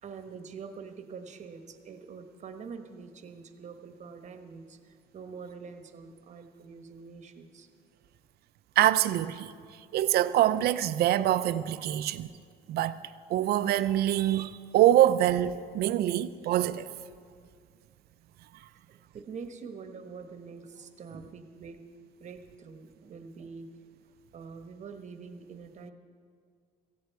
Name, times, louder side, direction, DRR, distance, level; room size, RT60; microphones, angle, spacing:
voice 1, 0.0-7.7 18.9-21.8 22.2-23.7 24.3-25.9, right 5 dB, 45° right, 1.3 m, -45 dB
voice 2, 8.8-9.5 9.9-12.3 12.7-13.0 13.3-16.9, right 12 dB, 70° right, 0.6 m, -25 dB
17.0 x 15.0 x 4.7 m
cardioid pair, 110°, 17 cm